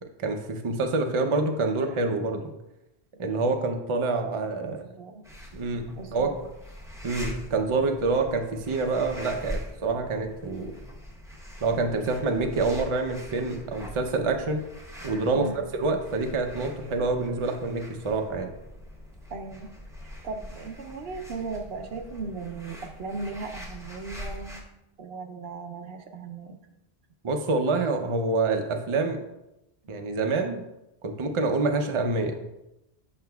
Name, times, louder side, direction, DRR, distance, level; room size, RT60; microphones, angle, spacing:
voice 1, 0.2-2.5 3.2-4.8 5.5-5.8 6.1-6.3 7.0-10.8 11.6-14.6 15.0-15.5 15.8-18.5 27.2-29.2 29.9-30.6 31.0-32.4, right 3 dB, 40° right, 4 dB, 0.5 m, -27 dB
voice 2, 4.5-5.2 5.9-6.4 15.3-15.6 19.3-19.7 20.0-24.6 25.0-26.6, right 4 dB, 70° right, 6 dB, 0.8 m, -37 dB
sound 1, 5.2-24.6, equal, 5° right, 0.8 m, -43 dB
7.6 x 5.7 x 2.3 m, 0.91 s
omnidirectional pair, 1.1 m